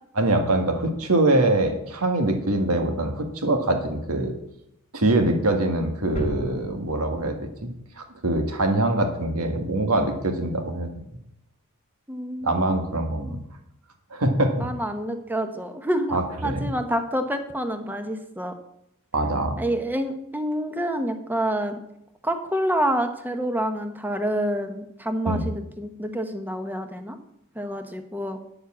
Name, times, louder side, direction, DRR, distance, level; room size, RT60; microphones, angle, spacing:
voice 1, 0.2-4.3 4.9-7.4 7.6-10.9 12.4-13.4 14.1-14.7 16.1-16.7 19.1-19.6 25.3-25.5, right 2 dB, 80° right, 5 dB, 1.7 m, -23 dB
sound 1, 6.2-8.1 8.5-8.6, left 1 dB, 30° left, 1.2 m, -36 dB
voice 2, 12.1-12.9 13.2-13.4 14.6-18.5 19.6-21.8 22.2-27.2 27.5-28.4, equal, 10° right, 7 dB, 0.9 m, -28 dB
9.7 x 7.2 x 7.3 m, 0.79 s
head